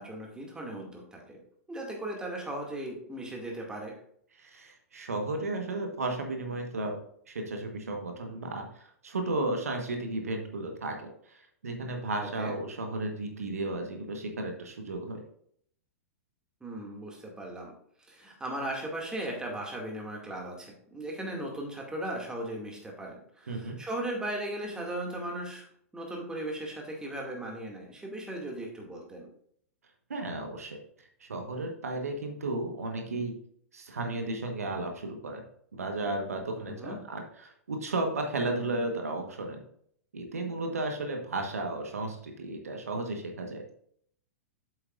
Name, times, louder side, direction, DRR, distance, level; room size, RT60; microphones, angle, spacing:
voice 1, 0.0-1.4 1.7-3.9 12.2-12.5 16.6-17.7 18.0-25.7 25.9-29.3 36.7-37.0, right 1 dB, 10° right, -1 dB, 2.3 m, -37 dB
voice 2, 4.4-7.0 7.3-15.2 23.5-23.8 30.1-30.8 31.2-33.3 33.7-35.4 35.7-39.6 40.1-43.7, right 2 dB, 80° right, 3 dB, 1.3 m, -34 dB
8.0 x 7.8 x 2.5 m, 0.65 s
hypercardioid pair, 105°, 8 cm